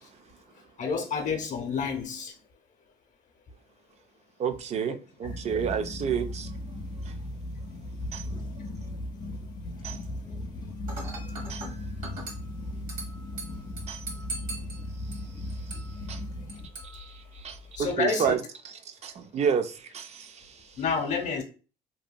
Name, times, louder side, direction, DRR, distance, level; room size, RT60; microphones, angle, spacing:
voice 1, 0.8-2.3 17.8-18.4 20.8-21.4, left 5 dB, 45° left, 0.8 m, -29 dB
voice 2, 4.4-6.5 8.1-8.2 9.8-10.0 11.5-11.6 13.9-14.0 16.1-16.2 16.9-18.4 18.6-20.6, right 7 dB, 40° right, 0.4 m, -30 dB
sound 1, 5.2-16.7, left 1 dB, 25° left, 0.5 m, -37 dB
Dishes pots and pans / Glass, 10.9-17.9, right 2 dB, 55° right, 1.1 m, -42 dB
2.7 x 2.6 x 2.2 m
cardioid pair, 110°, 17 cm